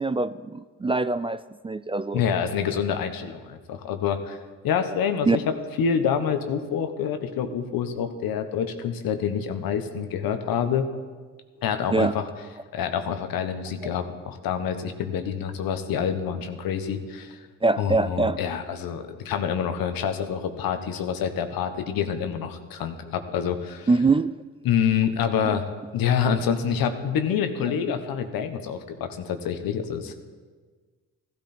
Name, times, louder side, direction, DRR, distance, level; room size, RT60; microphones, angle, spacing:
voice 1, 0.0-2.2 5.3-5.4 11.9-12.1 17.6-18.4 23.9-24.3, right 3 dB, 15° right, 14 dB, 0.3 m, -23 dB
voice 2, 2.1-4.4 4.6-10.9 11.6-12.2 12.7-17.4 17.8-23.9 24.6-25.6 25.9-30.1, left 7 dB, 85° left, 7 dB, 1.2 m, -27 dB
15.5 x 12.0 x 4.4 m, 1.5 s
cardioid pair, 70°, 34 cm